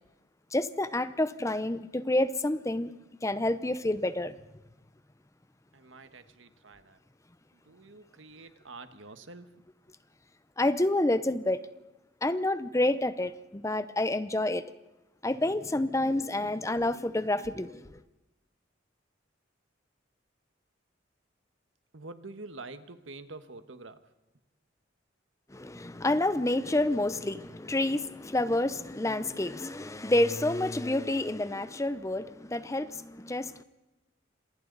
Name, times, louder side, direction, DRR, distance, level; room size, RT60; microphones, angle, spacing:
voice 1, 0.5-2.9 3.2-4.3 10.6-11.6 12.2-14.7 15.2-18.0 25.5-33.6, left 1 dB, 15° left, 13 dB, 0.7 m, -28 dB
voice 2, 5.7-7.0 7.5-9.5 21.9-24.1, right 3 dB, 85° right, 10 dB, 1.5 m, -47 dB
29.5 x 27.0 x 4.0 m, 1.0 s
head